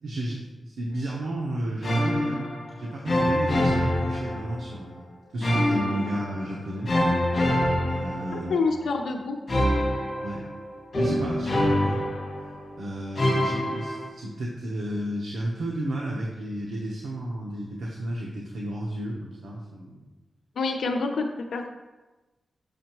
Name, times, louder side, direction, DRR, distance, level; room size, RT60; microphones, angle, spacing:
voice 1, 0.0-5.1 5.3-6.9 7.8-8.6 10.2-10.5 10.9-12.1 12.8-20.0, right 1 dB, 80° right, -3 dB, 1.0 m, -32 dB
sound 1, 1.8-2.7 3.1-4.8 5.4-6.4 6.9-8.8 9.5-12.7 13.2-14.1, left 1 dB, 50° left, 1.9 m, -25 dB
voice 2, 8.3-9.4 20.6-21.7, left 4 dB, 85° left, 4 dB, 0.7 m, -27 dB
7.0 x 5.7 x 3.1 m, 1.1 s
wide cardioid pair, 110°, 0 cm